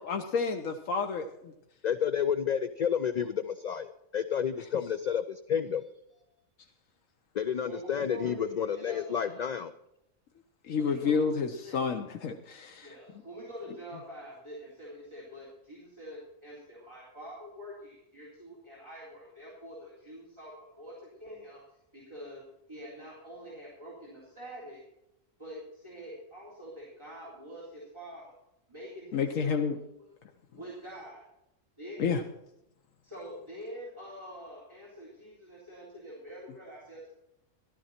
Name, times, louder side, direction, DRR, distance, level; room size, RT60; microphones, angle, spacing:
voice 1, 0.0-1.5 10.6-12.9 29.1-29.8 32.0-32.2, left 5 dB, 90° left, 4 dB, 1.3 m, -30 dB
voice 2, 1.8-5.8 7.3-9.7, left 8 dB, 60° left, 11 dB, 0.4 m, -30 dB
voice 3, 7.6-9.5 10.7-11.3 11.6-11.8 12.8-21.6 21.9-22.4 22.7-24.8 25.4-28.4 28.7-29.5 30.0-30.1 30.6-31.2 31.8-32.1 33.0-37.1, equal, 20° right, -7 dB, 3.8 m, -45 dB
14.0 x 12.5 x 4.3 m, 0.85 s
omnidirectional pair, 1.3 m